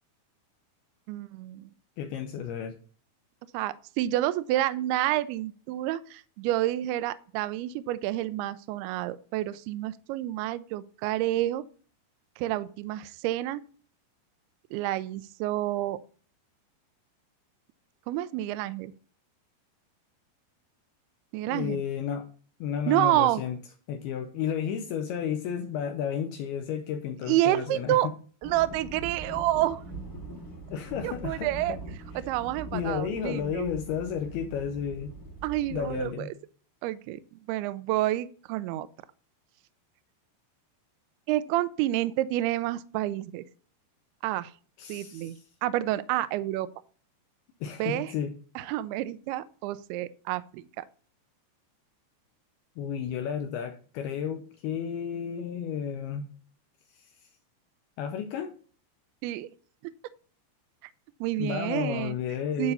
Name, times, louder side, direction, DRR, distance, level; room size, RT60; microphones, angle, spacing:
voice 1, 1.1-1.7 3.5-11.6 12.4-13.6 14.7-16.0 18.1-18.9 21.3-21.8 22.9-23.4 27.3-28.1 28.4-29.8 31.0-31.8 32.2-33.7 35.4-36.3 36.8-38.9 41.3-43.4 44.2-44.5 44.9-46.7 47.8-48.1 48.6-50.8 59.2-59.5 61.2-62.2 62.6-62.7, right 14 dB, 85° right, 14 dB, 2.3 m, -29 dB
voice 2, 2.0-2.8 21.5-22.3 22.6-23.6 23.9-28.0 30.7-31.8 32.7-35.1 35.7-36.3 44.8-45.3 47.6-48.4 52.8-56.2 57.0-57.1 58.0-58.5 61.4-62.7, left 8 dB, 80° left, 6 dB, 2.3 m, -32 dB
sound 1, 28.4-36.1, right 3 dB, 5° left, 1.7 m, -42 dB
11.5 x 4.2 x 5.3 m, 0.42 s
omnidirectional pair, 5.1 m